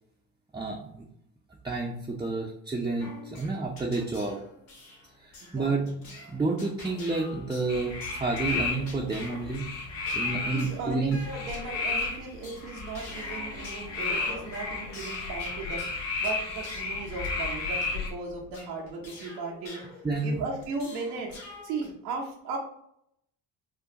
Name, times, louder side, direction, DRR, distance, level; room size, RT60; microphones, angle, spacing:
voice 1, 0.5-1.1 1.6-4.4 5.5-6.0 6.3-9.7 10.1-11.2 20.0-20.4, right 3 dB, 10° right, -2 dB, 0.5 m, -30 dB
sound 1, 3.0-21.9, left 2 dB, 80° left, 1.2 m, -46 dB
voice 2, 5.4-5.7 10.5-19.8 20.2-22.6, right 3 dB, 85° right, -2 dB, 0.9 m, -37 dB
sound 2, 7.7-18.1, left 3 dB, 60° left, 1.2 m, -33 dB
4.6 x 2.4 x 2.9 m, 0.72 s
hypercardioid pair, 60°, 50 cm